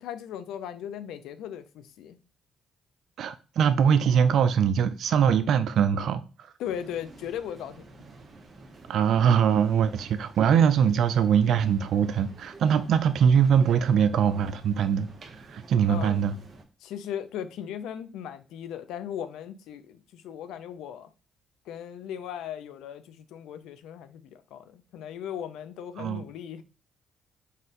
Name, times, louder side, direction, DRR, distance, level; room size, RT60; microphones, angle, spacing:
voice 1, 0.0-2.2 6.6-8.0 15.9-16.2 16.8-21.1 21.7-26.6, left 9 dB, 90° left, 0.4 m, -37 dB
voice 2, 3.2-6.5 8.9-15.1 15.4-16.3 26.0-26.2, right 7 dB, 70° right, 0.4 m, -22 dB
sound 1, 6.6-16.6, right 3 dB, 45° right, 0.9 m, -49 dB
4.1 x 2.6 x 3.7 m
cardioid pair, 90°, 0 cm